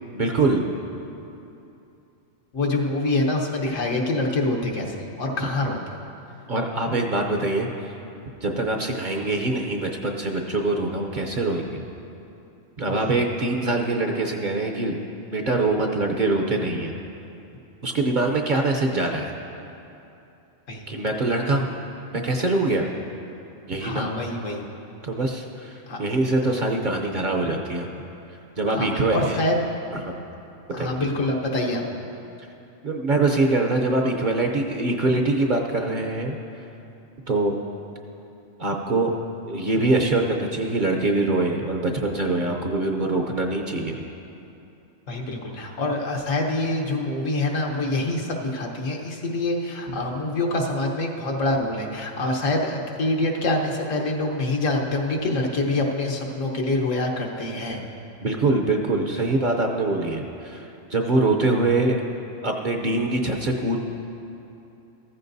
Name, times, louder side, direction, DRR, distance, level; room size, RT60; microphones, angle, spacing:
voice 1, 0.1-0.7 6.5-7.7 8.4-11.8 12.8-15.0 15.3-17.0 17.8-19.3 20.9-21.7 22.1-22.9 23.7-24.1 25.0-25.7 26.0-27.9 28.6-29.4 29.9-30.1 30.8-30.9 32.8-36.4 37.3-37.6 38.6-39.2 39.4-44.0 49.9-50.0 58.2-62.0 62.4-63.8, right 2 dB, 45° right, 2 dB, 0.7 m, -23 dB
voice 2, 2.5-5.8 12.9-13.1 20.7-20.9 23.8-24.6 25.9-26.0 28.7-29.6 30.7-31.8 45.1-57.8, left 2 dB, 75° left, 1 dB, 1.5 m, -25 dB
14.5 x 14.0 x 2.7 m, 2.8 s
omnidirectional pair, 1.3 m